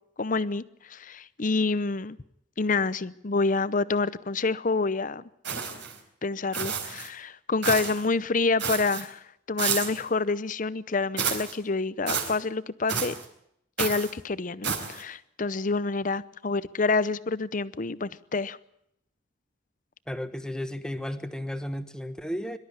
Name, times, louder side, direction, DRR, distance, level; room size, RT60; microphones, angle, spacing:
voice 1, 0.2-2.2 2.6-5.2 6.2-13.2 13.8-18.6, left 3 dB, 45° left, 17 dB, 0.7 m, -28 dB
sound 1, 5.4-6.0 6.5-7.1 7.6-8.0 8.6-9.0 9.6-10.0 11.2-11.5 12.1-12.4 12.9-13.3 13.8-14.1 14.6-15.0, right 6 dB, 65° right, 4.2 m, -30 dB
voice 2, 20.1-22.6, equal, 5° left, 10 dB, 1.2 m, -33 dB
24.0 x 12.5 x 9.7 m, 0.75 s
head